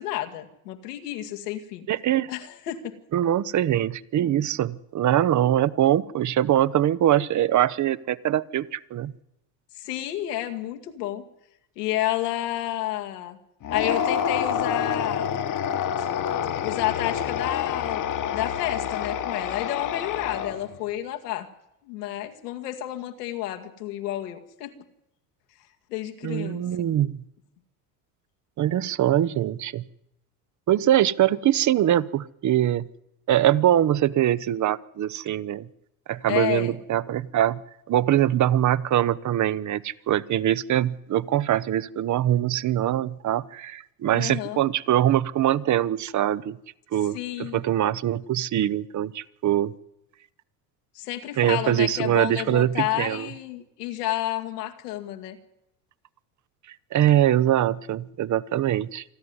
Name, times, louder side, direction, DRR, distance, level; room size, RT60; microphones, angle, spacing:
voice 1, 0.0-1.9 2.3-3.0 9.8-11.2 11.8-13.4 13.7-15.4 16.0-16.1 16.6-18.0 18.3-21.5 21.9-24.7 25.9-26.6 36.3-36.8 44.1-44.6 47.1-47.6 51.0-55.4, left 14 dB, 85° left, 5 dB, 2.2 m, -30 dB
voice 2, 1.9-2.3 3.1-9.1 26.2-27.2 28.6-29.8 30.7-32.8 33.3-35.7 36.1-37.6 37.9-46.6 46.9-49.7 51.4-53.3 56.9-59.0, right 12 dB, 40° right, 18 dB, 0.9 m, -23 dB
sound 1, 13.6-20.8, left 8 dB, 40° left, 1.4 m, -27 dB
27.5 x 11.0 x 9.6 m, 0.84 s
hypercardioid pair, 85°, 46 cm